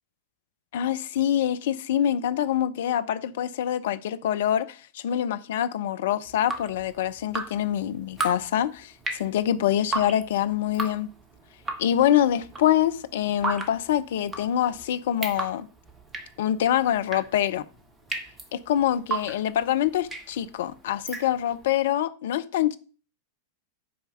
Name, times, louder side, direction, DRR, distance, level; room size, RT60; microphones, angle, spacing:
voice 1, 0.7-11.1 11.8-15.7 16.4-17.6 18.5-22.8, left 11 dB, 55° left, 0.6 m, -25 dB
Drip, 6.3-21.7, right 3 dB, 15° right, 1.2 m, -36 dB
7.9 x 4.7 x 6.5 m
figure-of-eight pair, 90°, 0 cm